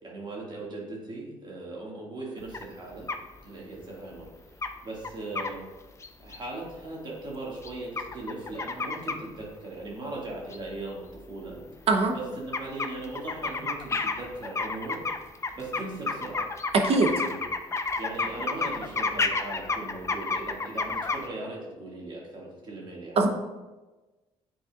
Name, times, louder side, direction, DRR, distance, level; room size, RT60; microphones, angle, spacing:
voice 1, 0.0-3.1 3.4-5.6 6.2-11.6 12.1-15.1 15.3-16.5 16.9-17.5 18.0-23.2, right 2 dB, 40° right, -3 dB, 2.0 m, -39 dB
sound 1, 2.5-2.6 3.1-3.2 4.3-4.4 4.6-4.7 5.0-5.5 6.0-6.4 7.6-9.2 10.5-10.6 11.2-11.3 11.5-11.6 11.9-12.2 12.5-21.3, left 3 dB, 25° left, 0.5 m, -31 dB
voice 2, 16.7-17.1 23.2-23.3, right 3 dB, 55° right, 4 dB, 0.8 m, -21 dB
9.5 x 4.1 x 2.4 m, 1.2 s
cardioid pair, 90°, 12 cm